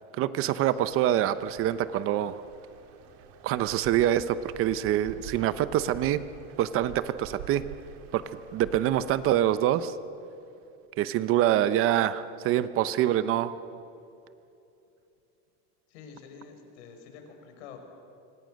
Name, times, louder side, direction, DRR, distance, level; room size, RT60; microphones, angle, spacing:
voice 1, 0.2-2.4 3.4-6.2 6.6-7.6 8.1-8.2 8.5-9.9 11.0-13.5, right 12 dB, 40° right, 14 dB, 0.9 m, -25 dB
sound 1, 0.7-9.6, right 9 dB, 70° right, 3.0 m, -48 dB
voice 2, 15.9-17.8, left 6 dB, 80° left, 4 dB, 5.7 m, -47 dB
27.0 x 25.0 x 6.5 m, 2.8 s
cardioid pair, 155°, 33 cm